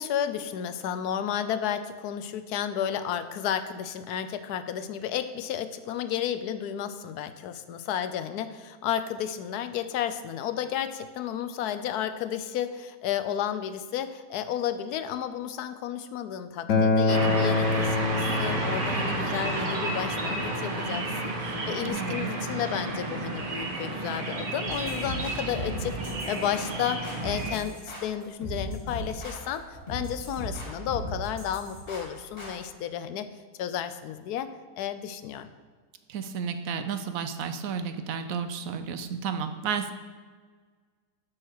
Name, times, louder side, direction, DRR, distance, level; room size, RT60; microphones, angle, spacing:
voice 1, 0.0-33.3 33.6-34.5 34.8-35.5, left 9 dB, 85° left, 10 dB, 1.2 m, -32 dB
Acoustic guitar, 16.7-21.9, left 3 dB, 60° left, 1.2 m, -28 dB
sound 1, 17.1-27.6, right 2 dB, 35° right, 1.1 m, -31 dB
voice 2, 21.8-22.3 36.1-39.9, right 6 dB, 70° right, 9 dB, 1.0 m, -32 dB
Hip hop beats howler, 24.7-32.5, equal, 35° left, 2.8 m, -38 dB
9.7 x 4.7 x 6.5 m, 1.5 s
omnidirectional pair, 1.6 m